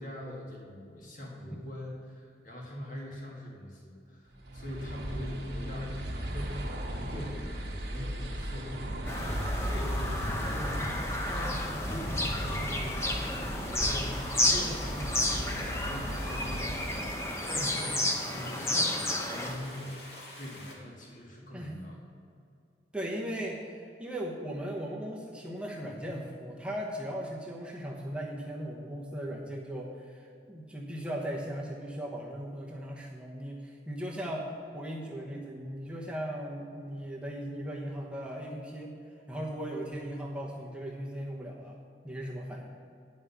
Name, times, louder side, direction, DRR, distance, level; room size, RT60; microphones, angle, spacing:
voice 1, 0.0-18.0 18.2-20.0 20.4-22.0, left 1 dB, 45° left, -2 dB, 1.9 m, -43 dB
sound 1, 4.3-17.8, equal, 70° right, 1.4 m, -37 dB
sound 2, 9.0-20.7, left 1 dB, 70° left, 2.2 m, -47 dB
Bird vocalization bird call bird song, 9.1-19.6, left 1 dB, 15° left, 0.8 m, -32 dB
voice 2, 22.9-38.9 39.3-41.8 42.0-42.7, equal, 5° right, -2 dB, 1.0 m, -38 dB
9.9 x 5.5 x 7.0 m, 2.4 s
head